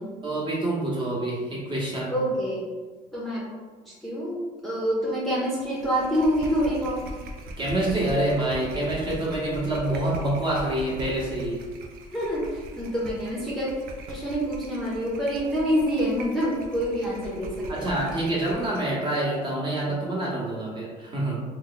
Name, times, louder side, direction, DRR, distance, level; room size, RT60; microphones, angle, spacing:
voice 1, 0.2-2.2 7.6-11.6 17.7-21.4, right 1 dB, 30° right, -5 dB, 1.0 m, -27 dB
voice 2, 2.1-2.7 3.1-3.5 4.0-7.0 12.1-13.7 14.1-17.9, equal, ahead, -8 dB, 0.8 m, -26 dB
sound 1, 5.6-18.9, right 1 dB, 65° right, 0.6 m, -41 dB
3.0 x 2.3 x 3.8 m, 1.4 s
cardioid pair, 120°, 16 cm